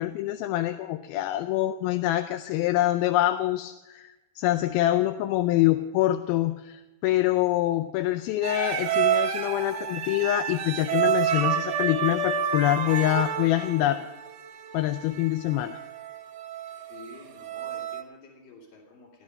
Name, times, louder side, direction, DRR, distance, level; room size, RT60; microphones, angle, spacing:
voice 1, 0.0-14.1 14.7-15.8, left 14 dB, 80° left, 8 dB, 2.4 m, -25 dB
sound 1, 8.4-18.0, right 8 dB, 70° right, 1.5 m, -29 dB
voice 2, 16.9-19.2, left 2 dB, 65° left, -6 dB, 4.2 m, -49 dB
17.0 x 11.0 x 5.2 m, 1.0 s
omnidirectional pair, 4.4 m